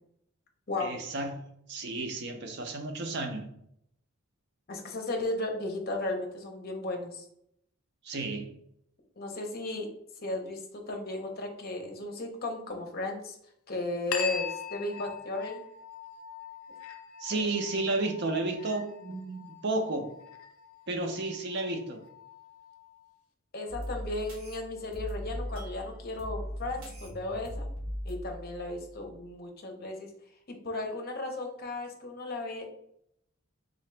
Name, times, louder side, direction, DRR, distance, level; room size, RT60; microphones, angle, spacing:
voice 1, 0.8-1.4 1.7-3.5 8.0-8.5 17.2-20.1 20.9-22.0, right 2 dB, 50° right, 4 dB, 0.6 m, -32 dB
voice 2, 4.7-7.3 9.2-9.9 10.2-13.4 13.7-15.6 17.3-17.4 23.5-27.7 28.0-30.1 30.5-32.7, left 2 dB, 45° left, 3 dB, 0.7 m, -35 dB
sound 1, 14.1-23.1, left 7 dB, 75° left, 0.5 m, -42 dB
sound 2, 23.7-29.3, equal, 65° right, 1.1 m, -39 dB
3.9 x 2.8 x 3.3 m, 0.74 s
head